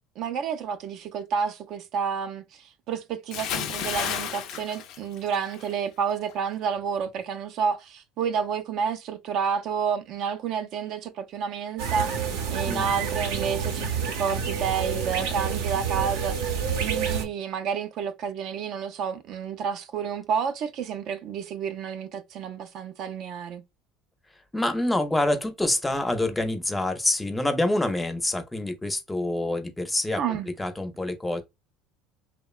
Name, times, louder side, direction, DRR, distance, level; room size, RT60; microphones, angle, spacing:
voice 1, 0.2-12.1 12.5-23.6 30.2-30.5, right 7 dB, 55° right, 0.3 m, -30 dB
Bathtub (filling or washing) / Splash splatter, 3.3-5.7 6.0-6.3, left 9 dB, 60° left, 0.4 m, -32 dB
sound 1, 11.8-17.3, right 6 dB, 85° right, 0.6 m, -28 dB
voice 2, 24.5-31.4, left 1 dB, 10° left, 0.5 m, -26 dB
2.8 x 2.1 x 2.3 m
supercardioid pair, 120°, 0 cm